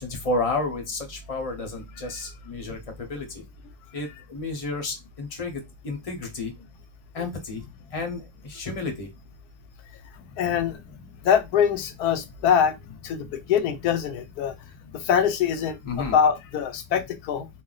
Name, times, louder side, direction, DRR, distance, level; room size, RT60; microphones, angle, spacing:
voice 1, 0.0-2.8 3.1-3.2 3.9-6.5 7.1-7.6 7.9-8.2 8.5-9.1 15.8-16.1, left 3 dB, 30° left, 0.6 m, -31 dB
voice 2, 10.4-10.8 11.2-14.6 14.9-17.5, left 8 dB, 80° left, 1.1 m, -24 dB
2.6 x 2.1 x 3.9 m
omnidirectional pair, 1.6 m